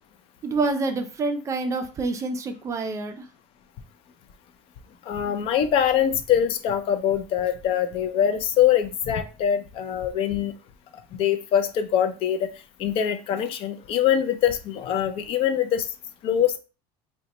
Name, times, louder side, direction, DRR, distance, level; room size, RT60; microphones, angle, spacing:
voice 1, 0.4-3.2, right 3 dB, 25° right, 7 dB, 0.4 m, -27 dB
voice 2, 5.1-10.5 11.1-12.5 12.8-15.9 16.2-16.6, left 9 dB, 50° left, 9 dB, 0.4 m, -23 dB
4.0 x 2.2 x 2.8 m, 0.33 s
cardioid pair, 150°, 12 cm